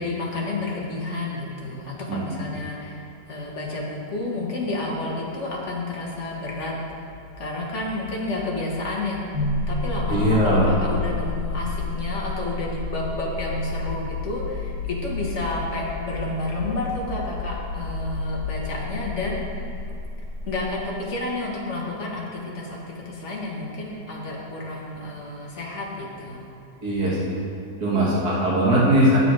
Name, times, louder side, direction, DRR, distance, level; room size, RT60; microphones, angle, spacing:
voice 1, 0.0-6.7 7.4-19.4 20.5-26.4, left 2 dB, 45° left, -3 dB, 1.6 m, -30 dB
voice 2, 2.1-2.4 10.1-10.7 26.8-27.3 27.8-29.2, right 1 dB, 65° right, -7 dB, 2.4 m, -20 dB
sound 1, 4.7-19.9, left 1 dB, 40° right, 2.1 m, -39 dB
sound 2, 9.3-21.4, left 2 dB, 70° left, 2.5 m, -31 dB
9.4 x 7.0 x 4.7 m, 2.7 s
omnidirectional pair, 1.8 m